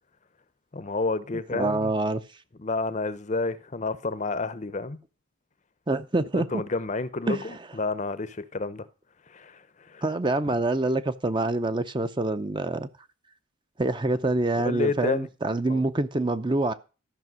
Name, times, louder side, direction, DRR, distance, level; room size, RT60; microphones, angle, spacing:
voice 1, 0.7-1.9 2.6-5.0 6.3-8.8 9.3-9.6 9.9-10.0 14.6-15.3 15.7-15.8, left 3 dB, 35° left, 0.7 m, -30 dB
voice 2, 1.5-2.2 5.9-6.6 7.3-7.6 10.0-12.9 13.8-16.7, right 2 dB, 20° right, 0.5 m, -26 dB
13.5 x 5.9 x 6.2 m
head